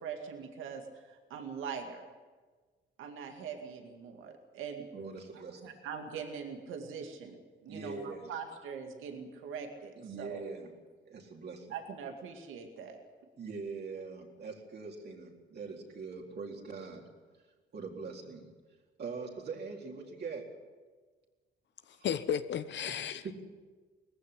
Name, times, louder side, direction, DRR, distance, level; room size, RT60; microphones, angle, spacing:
voice 1, 0.0-2.0 3.0-4.9 5.3-10.4 11.7-13.0, right 6 dB, 85° right, 5 dB, 2.2 m, -42 dB
voice 2, 4.9-5.7 7.7-8.3 10.0-10.7 11.1-11.7 13.4-17.0 17.7-18.5 19.0-20.4 22.0-22.1 23.2-23.3, right 4 dB, 55° right, 0 dB, 3.9 m, -42 dB
voice 3, 22.0-23.4, left 8 dB, 65° left, 12 dB, 1.0 m, -34 dB
19.0 x 15.0 x 9.9 m, 1.4 s
cardioid pair, 90°, 20 cm